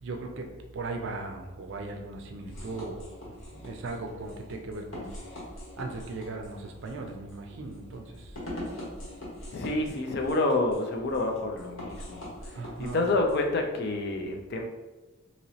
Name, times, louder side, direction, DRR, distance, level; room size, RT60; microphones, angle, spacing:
voice 1, 0.0-3.0 3.5-5.1 5.8-8.3 12.5-13.0, right 3 dB, 60° right, 3 dB, 0.4 m, -38 dB
sound 1, 2.4-13.4, left 1 dB, 70° left, 0.9 m, -43 dB
voice 2, 9.5-12.3 12.9-14.6, left 2 dB, 50° left, 3 dB, 0.4 m, -28 dB
2.9 x 2.9 x 2.8 m, 1.1 s
head